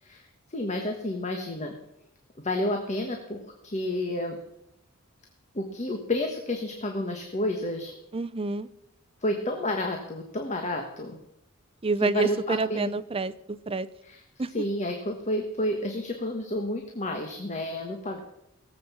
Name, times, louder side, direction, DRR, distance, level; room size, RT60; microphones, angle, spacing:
voice 1, 0.5-1.7 2.4-4.4 5.5-7.9 9.2-11.2 12.0-12.9 14.0-14.2 14.5-18.2, left 1 dB, 35° left, 3 dB, 1.4 m, -30 dB
voice 2, 8.1-8.7 11.8-13.9 14.4-14.5, right 3 dB, 25° right, 13 dB, 0.6 m, -28 dB
17.5 x 7.8 x 7.4 m, 0.82 s
head